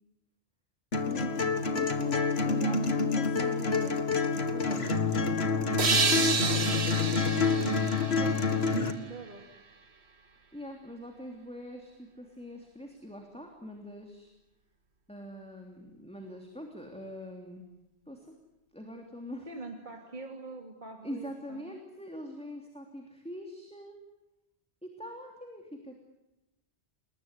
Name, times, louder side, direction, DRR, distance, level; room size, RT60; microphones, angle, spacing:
sound 1, 0.9-8.9, left 4 dB, 65° left, 2.1 m, -28 dB
voice 1, 1.0-4.0 4.3-5.4 10.5-14.3 15.1-17.6 18.1-18.3 18.7-19.5 21.0-24.0 24.8-25.9, equal, 5° left, 2 dB, 3.1 m, -43 dB
sound 2, 5.8-9.3, right 5 dB, 70° right, 1.7 m, -30 dB
voice 2, 6.4-7.1 8.2-9.6 19.5-21.8, right 2 dB, 45° right, 2 dB, 2.9 m, -44 dB
29.0 x 20.5 x 9.8 m, 0.95 s
omnidirectional pair, 1.2 m